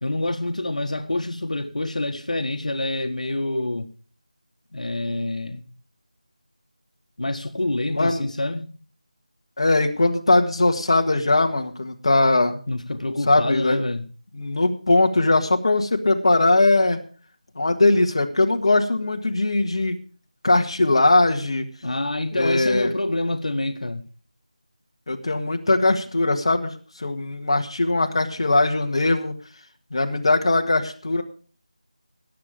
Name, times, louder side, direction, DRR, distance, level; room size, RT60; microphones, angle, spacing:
voice 1, 0.0-3.9 4.7-5.6 7.2-8.7 12.7-14.0 21.8-24.0, left 2 dB, 75° left, 1.5 m, -27 dB
voice 2, 7.9-8.2 9.6-12.6 13.3-13.8 14.3-17.0 17.6-20.0 20.4-21.7 22.3-22.9 25.1-26.7 27.0-29.3 29.9-31.2, left 2 dB, 45° left, 1.7 m, -20 dB
18.5 x 7.8 x 5.1 m
figure-of-eight pair, 175°, 4 cm